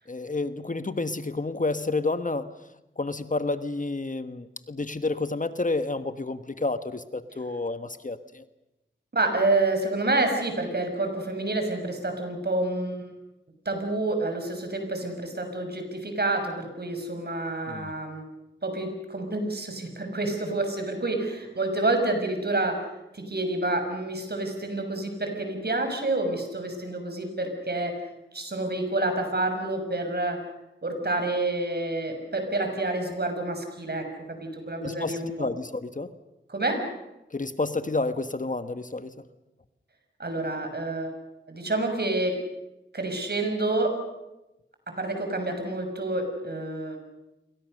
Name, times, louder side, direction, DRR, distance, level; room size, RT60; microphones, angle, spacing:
voice 1, 0.1-2.5 3.0-8.4 17.7-17.9 34.8-36.1 37.3-39.2, left 3 dB, 40° left, 11 dB, 1.4 m, -30 dB
voice 2, 9.1-13.1 13.6-18.3 18.6-22.9 23.1-28.0 28.3-30.4 30.8-35.3 36.5-36.8 40.2-41.1 41.5-42.4 42.9-44.0 44.9-47.0, right 2 dB, 55° right, 5 dB, 6.3 m, -28 dB
28.5 x 23.0 x 6.7 m, 0.96 s
cardioid pair, 50°, 20 cm